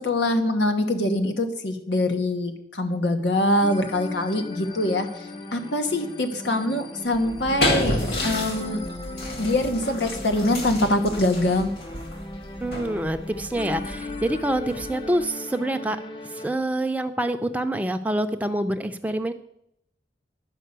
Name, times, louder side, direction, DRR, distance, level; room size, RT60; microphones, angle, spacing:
voice 1, 0.0-5.3 5.5-8.9 9.4-11.7, left 1 dB, 85° left, 7 dB, 1.2 m, -24 dB
sound 1, 3.6-16.5, left 2 dB, 25° left, 0.7 m, -37 dB
sound 2, 7.1-15.2, left 1 dB, 55° left, 2.0 m, -31 dB
voice 2, 12.6-16.0 16.3-19.3, right 1 dB, 10° right, 7 dB, 0.5 m, -26 dB
10.5 x 5.3 x 8.1 m, 0.77 s
head